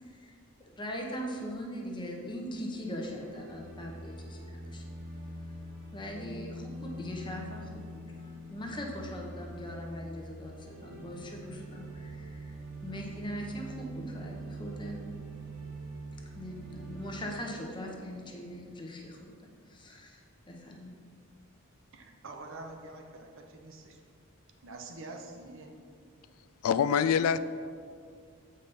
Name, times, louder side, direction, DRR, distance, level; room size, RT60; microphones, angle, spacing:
voice 1, 0.0-4.8 5.9-7.8 8.2-15.0 16.3-19.4 19.7-21.0, equal, 20° left, 0 dB, 0.9 m, -41 dB
sound 1, 2.9-18.9, right 1 dB, 80° right, 1.4 m, -44 dB
voice 2, 21.9-24.0 24.6-25.7, right 2 dB, 60° right, 3 dB, 0.8 m, -46 dB
voice 3, 26.6-27.4, left 7 dB, 70° left, 15 dB, 0.3 m, -25 dB
8.2 x 5.2 x 4.2 m, 2.2 s
head